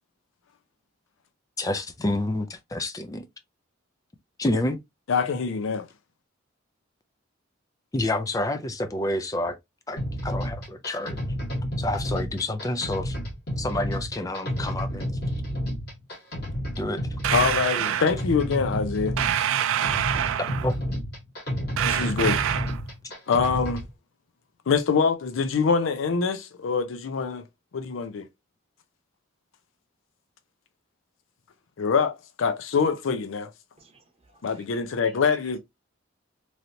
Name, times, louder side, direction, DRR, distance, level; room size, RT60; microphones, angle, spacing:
voice 1, 1.6-3.2 4.4-4.8 7.9-9.6 9.9-11.2 11.8-13.2 13.6-15.2 16.8-17.2 20.6-21.0, left 1 dB, 15° left, 0.4 m, -29 dB
voice 2, 5.1-5.8 17.3-19.2 21.8-22.4 23.3-23.8 24.7-27.4 27.7-28.3 31.8-33.5 34.4-35.6, left 5 dB, 75° left, 0.5 m, -24 dB
sound 1, 10.0-23.9, equal, 55° left, 1.6 m, -31 dB
sound 2, 17.2-18.1 19.2-20.7 21.8-22.8, right 10 dB, 85° right, 0.3 m, -26 dB
voice 3, 33.8-35.2, right 3 dB, 30° right, 0.9 m, -57 dB
3.1 x 2.8 x 2.6 m
head